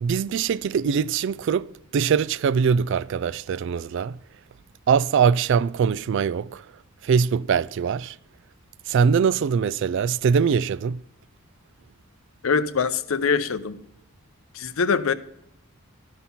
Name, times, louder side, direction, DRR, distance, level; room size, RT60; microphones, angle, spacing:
voice 1, 0.0-4.2 4.9-6.6 7.0-8.2 8.9-11.0, right 6 dB, 55° right, 0.3 m, -22 dB
voice 2, 12.4-13.8 14.5-15.1, left 5 dB, 70° left, 0.6 m, -23 dB
12.5 x 5.6 x 5.7 m
head